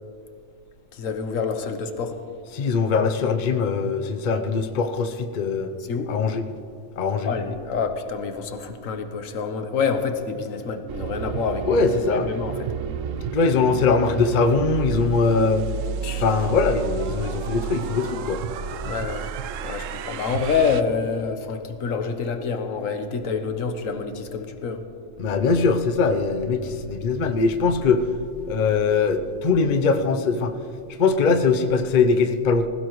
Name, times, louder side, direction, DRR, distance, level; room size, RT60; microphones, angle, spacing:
voice 1, 0.9-2.2 5.8-6.1 7.2-12.7 16.0-16.2 18.8-19.3 19.6-24.8, left 5 dB, 80° left, 8 dB, 1.3 m, -27 dB
voice 2, 2.5-5.7 6.1-6.4 7.0-7.3 11.6-12.3 13.3-15.6 16.2-18.4 25.2-28.0 28.5-30.5 31.0-32.7, left 4 dB, 45° left, 7 dB, 0.7 m, -21 dB
sound 1, 10.9-20.8, right 7 dB, 80° right, 1.0 m, -31 dB
20.0 x 16.5 x 3.1 m, 2.5 s
omnidirectional pair, 1.3 m